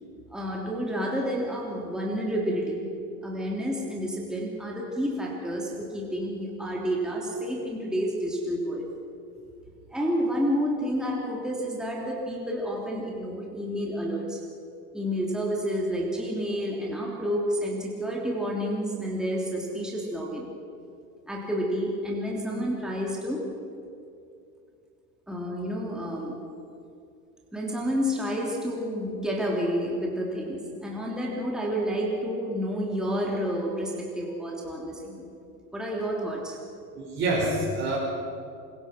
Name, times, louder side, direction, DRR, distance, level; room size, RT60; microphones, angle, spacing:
voice 1, 0.3-2.9 3.2-8.9 9.9-14.4 14.9-20.5 21.3-23.5 25.3-26.5 27.5-35.2 35.7-36.6, equal, ahead, -2 dB, 3.0 m, -30 dB
voice 2, 36.9-38.0, right 2 dB, 25° right, -6 dB, 5.0 m, -26 dB
26.0 x 23.0 x 6.1 m, 2.5 s
supercardioid pair, 145°, 50 cm